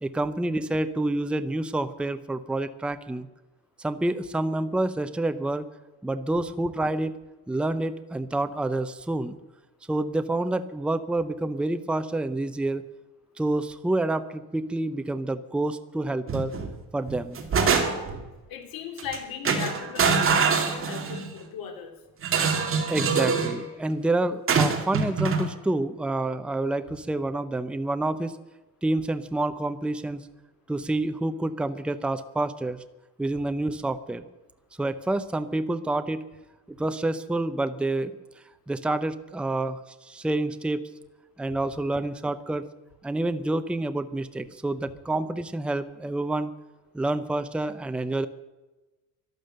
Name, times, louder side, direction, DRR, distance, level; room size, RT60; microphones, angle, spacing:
voice 1, 0.0-3.3 3.8-5.7 6.0-7.2 7.5-9.4 9.9-12.8 13.4-16.5 16.9-17.4 22.9-28.4 28.8-30.2 30.7-32.8 33.2-34.2 34.8-36.3 36.7-38.1 38.7-40.8 41.4-42.6 43.0-46.5 46.9-48.3, right 2 dB, 5° right, 10 dB, 0.6 m, -28 dB
sound 1, 16.3-16.7 17.1-18.2 19.0-19.2 19.4-21.3 22.2-23.6 24.5-25.5, right 5 dB, 40° right, 2.4 m, -24 dB
voice 2, 18.5-22.0, left 7 dB, 85° left, 4 dB, 3.2 m, -37 dB
12.0 x 12.0 x 7.7 m, 1.1 s
cardioid pair, 150°, 35 cm